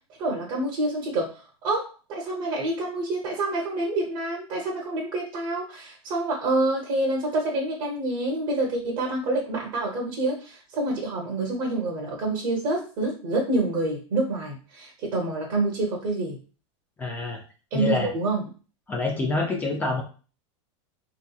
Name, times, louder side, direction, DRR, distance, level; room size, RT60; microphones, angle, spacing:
voice 1, 0.2-16.4 17.7-18.4, right 2 dB, 30° right, -1 dB, 0.8 m, -27 dB
voice 2, 17.0-17.4 17.7-18.1 18.9-20.0, left 3 dB, 10° left, 0 dB, 0.4 m, -26 dB
3.5 x 2.9 x 2.3 m, 0.36 s
supercardioid pair, 170°, 16 cm